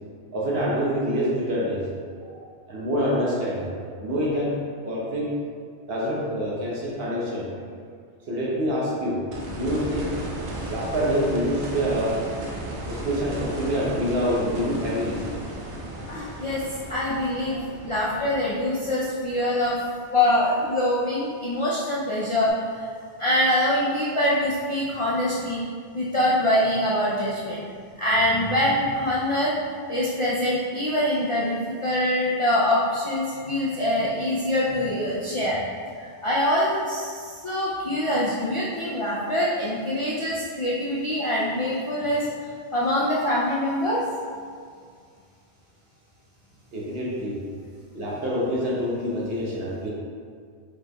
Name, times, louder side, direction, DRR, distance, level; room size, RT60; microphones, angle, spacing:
voice 1, 0.3-1.9 2.2-4.6 4.8-5.3 5.9-7.5 8.3-10.1 10.7-12.2 12.8-15.3 15.9-16.0 17.5-17.6 46.7-47.4 47.9-49.9, equal, 65° right, -5 dB, 1.1 m, -26 dB
sound 1, 9.3-20.2 22.5-22.6, right 1 dB, 90° right, 1.0 m, -35 dB
voice 2, 16.1-16.6 16.9-19.8 20.1-22.9 23.2-25.6 25.9-27.6 28.0-29.6 29.9-35.6 36.0-42.3 42.7-44.0, left 1 dB, 50° left, -7 dB, 0.3 m, -24 dB
5.0 x 3.1 x 2.2 m, 2.1 s
omnidirectional pair, 1.1 m